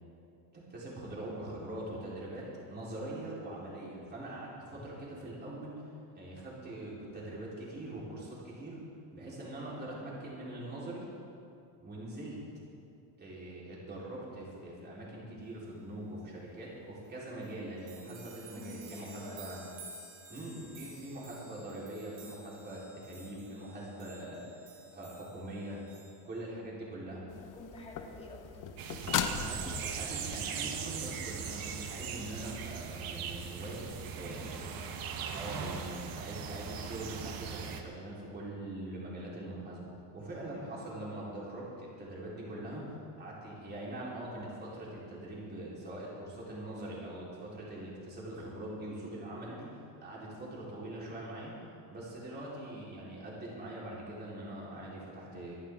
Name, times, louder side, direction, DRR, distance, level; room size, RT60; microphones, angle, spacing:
voice 1, 0.5-5.7 6.1-8.8 9.1-11.1 11.8-12.6 13.2-19.7 20.3-24.4 24.9-25.8 26.2-27.3 29.4-34.7 35.3-51.5 51.9-55.5, right 1 dB, 20° right, -6 dB, 4.0 m, -43 dB
sound 1, 17.1-17.2 17.4-26.4, right 3 dB, 75° right, 3.6 m, -53 dB
voice 2, 18.5-19.6 27.5-28.7 34.2-35.0, left 2 dB, 15° left, -3 dB, 2.5 m, -49 dB
sound 2, 27.3-30.4 33.9-34.0, left 8 dB, 40° left, 1.0 m, -37 dB
sound 3, 28.8-37.8, right 7 dB, 45° right, 1.3 m, -39 dB
24.0 x 11.5 x 3.7 m, 2.6 s
cardioid pair, 155°, 47 cm